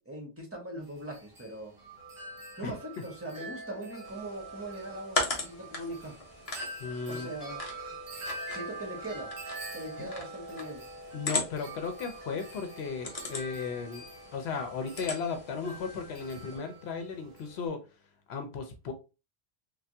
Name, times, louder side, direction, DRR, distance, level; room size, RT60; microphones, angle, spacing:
voice 1, 0.0-1.8 2.6-6.2 7.1-7.6 8.5-9.4 9.7-10.8, right 1 dB, 15° right, 1.0 m, -40 dB
Wind chime, 0.8-17.7, right 1 dB, 45° right, 1.0 m, -45 dB
sound 1, 4.0-16.6, left 2 dB, 40° left, 0.7 m, -39 dB
voice 2, 6.8-7.3 10.0-10.1 11.1-14.0 14.3-17.8 18.3-18.9, left 5 dB, 80° left, 0.9 m, -35 dB
3.3 x 2.3 x 2.6 m
omnidirectional pair, 1.1 m